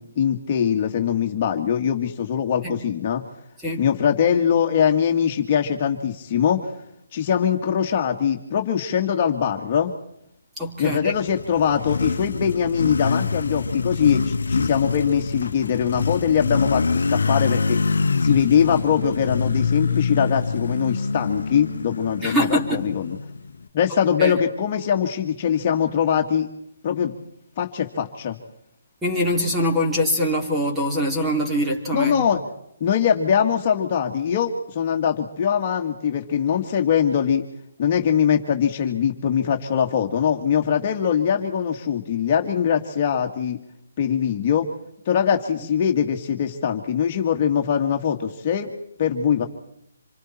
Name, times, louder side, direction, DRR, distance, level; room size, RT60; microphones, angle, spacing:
voice 1, 0.0-3.2 3.8-6.7 7.1-9.9 10.8-17.8 18.2-23.2 23.7-26.5 26.8-27.2 27.6-28.4 31.9-32.4 32.8-37.4 37.8-43.6 44.0-44.7 45.1-48.7 49.0-49.5, left 8 dB, 35° left, 2 dB, 2.0 m, -22 dB
voice 2, 10.6-11.1 22.2-22.9 24.2-24.4 29.0-32.3, equal, 10° right, 0 dB, 3.5 m, -23 dB
Motorcycle, 11.0-23.6, left 4 dB, 75° left, 1.0 m, -25 dB
27.0 x 24.0 x 4.5 m, 0.78 s
hypercardioid pair, 150°, 0 cm